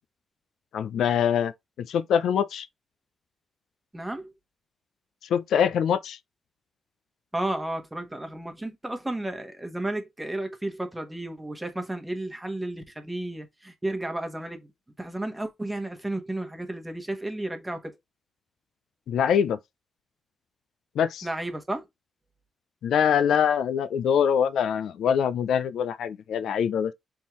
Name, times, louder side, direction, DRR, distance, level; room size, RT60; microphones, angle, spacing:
voice 1, 0.7-1.5 1.8-2.7 5.3-6.2 19.1-19.6 21.0-21.3 22.8-26.9, left 8 dB, 85° left, 0.4 m, -24 dB
voice 2, 3.9-4.3 7.3-14.7 15.0-18.0 21.2-21.9, right 1 dB, 10° right, 1.2 m, -33 dB
4.3 x 3.7 x 3.0 m
cardioid pair, 100°, 0 cm